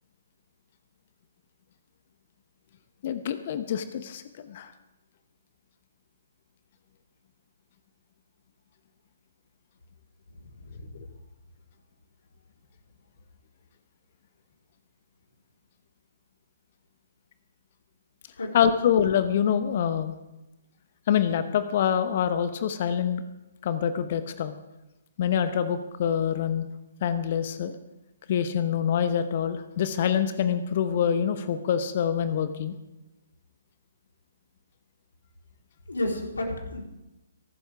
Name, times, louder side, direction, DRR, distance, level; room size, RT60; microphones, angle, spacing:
voice 1, 3.0-4.7 18.5-20.1 21.1-23.2 23.6-24.5 25.2-26.7 27.0-27.7 28.3-32.8, left 8 dB, 40° left, 11 dB, 1.0 m, -25 dB
voice 2, 10.3-10.9 18.4-18.5 35.9-36.8, left 1 dB, 65° left, 0 dB, 4.2 m, -32 dB
23.0 x 12.5 x 3.6 m, 0.98 s
figure-of-eight pair, 130°, 0 cm